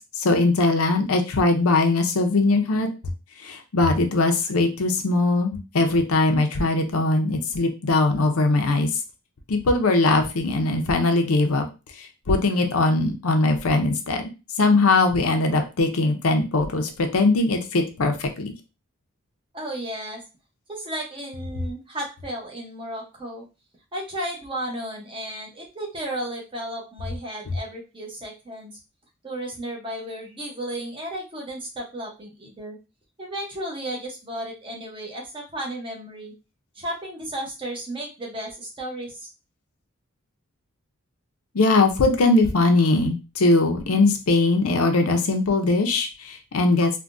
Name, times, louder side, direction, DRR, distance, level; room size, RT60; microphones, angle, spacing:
voice 1, 0.2-2.9 3.4-8.9 9.5-11.7 12.0-14.3 14.6-18.5 41.5-47.0, left 2 dB, 80° left, 5 dB, 0.6 m, -21 dB
voice 2, 19.5-20.2 20.7-23.5 23.9-28.8 29.2-32.8 33.2-36.3 36.8-39.3, right 1 dB, 25° right, 0 dB, 0.8 m, -34 dB
3.5 x 2.2 x 2.5 m, 0.29 s
head